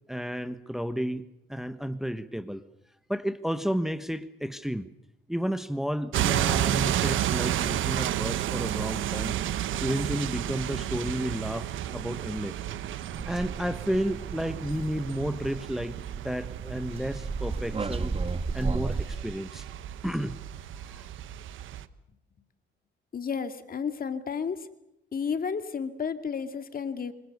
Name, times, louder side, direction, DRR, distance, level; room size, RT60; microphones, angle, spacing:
voice 1, 0.1-2.6 3.1-4.9 5.3-9.4 9.8-12.5 13.2-16.0 16.2-19.7 20.0-20.4 20.8-21.1, equal, ahead, 11 dB, 1.3 m, -32 dB
sound 1, 6.1-21.9, right 12 dB, 80° right, 1.3 m, -32 dB
sound 2, 13.1-19.1, right 4 dB, 30° right, 1.5 m, -34 dB
voice 2, 23.1-24.7 25.1-27.1, left 6 dB, 45° left, 9 dB, 2.4 m, -32 dB
26.5 x 26.0 x 6.7 m, 0.82 s
cardioid pair, 90°, 20 cm